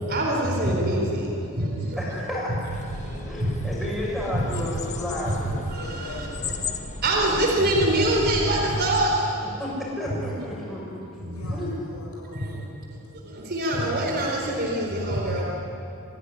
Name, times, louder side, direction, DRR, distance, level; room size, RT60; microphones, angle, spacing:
voice 1, 0.0-2.0 3.0-3.5 4.3-4.4 5.7-6.3 7.0-9.5 11.1-11.7 12.3-12.6 13.3-15.4, right 1 dB, 45° right, -1 dB, 4.1 m, -25 dB
voice 2, 2.0-2.5 3.0-5.5 7.3-7.6 9.4-10.8 11.5-11.8 13.0-13.1, left 1 dB, ahead, -6 dB, 7.4 m, -32 dB
sound 1, 2.7-9.2, left 3 dB, 30° left, 1.4 m, -36 dB
voice 3, 5.7-6.7 11.3-12.6, left 1 dB, 85° left, -3 dB, 6.8 m, -42 dB
26.0 x 16.5 x 10.0 m, 2.8 s
head